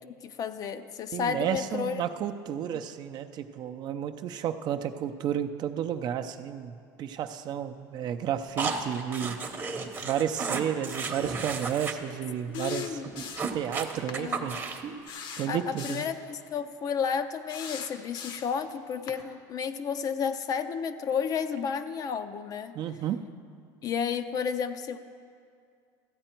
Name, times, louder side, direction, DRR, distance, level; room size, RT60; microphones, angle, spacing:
voice 1, 0.2-2.0 12.5-13.1 14.2-14.5 15.5-22.8 23.8-25.0, left 6 dB, 40° left, 10 dB, 0.5 m, -32 dB
voice 2, 1.1-9.4 10.0-12.9 13.5-14.6 15.4-16.0 22.7-23.2, right 9 dB, 50° right, 7 dB, 0.5 m, -32 dB
sound 1, 8.6-11.9 12.2-12.4 12.6-12.7 13.0-14.9, right 4 dB, 25° right, 0.9 m, -33 dB
sound 2, 12.5-13.6 14.1-14.2 15.1-16.2 17.5-18.6 19.1-19.2, left 6 dB, 60° left, 0.9 m, -41 dB
14.0 x 9.0 x 4.4 m, 2.3 s
supercardioid pair, 115°, 9 cm